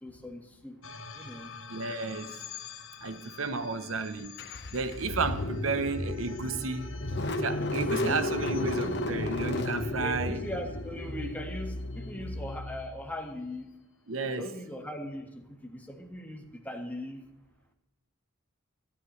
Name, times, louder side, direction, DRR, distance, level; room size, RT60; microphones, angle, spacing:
voice 1, 0.0-0.8 1.1-1.5 7.6-8.2 10.0-13.7 14.4-17.2, left 1 dB, 10° left, 1.7 m, -40 dB
sound 1, 0.8-13.3, left 3 dB, 80° left, 1.3 m, -45 dB
voice 2, 1.7-2.5 3.0-4.4 4.7-7.0 7.4-10.4 14.1-14.5, right 3 dB, 80° right, 0.9 m, -32 dB
Car / Engine starting, 4.4-13.1, left 1 dB, 55° left, 1.3 m, -33 dB
25.5 x 10.0 x 3.2 m
head